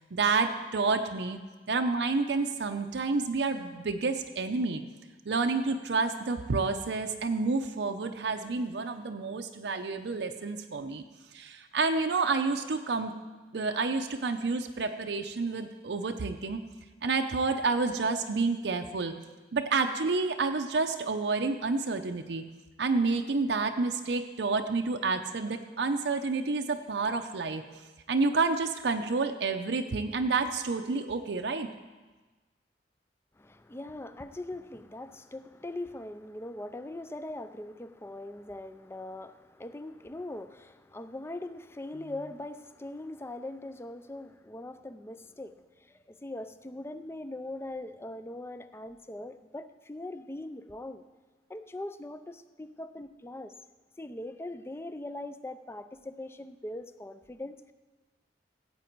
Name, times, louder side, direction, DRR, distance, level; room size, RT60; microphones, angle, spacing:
voice 1, 0.1-1.4 1.7-4.8 5.3-11.0 11.3-13.1 13.5-16.6 17.0-19.1 19.5-22.4 22.8-27.6 28.1-31.7, right 4 dB, 75° right, 5 dB, 0.6 m, -29 dB
voice 2, 33.4-51.0 51.5-53.5 54.0-57.6, left 1 dB, 15° left, 11 dB, 0.4 m, -41 dB
16.0 x 8.2 x 4.6 m, 1.3 s
head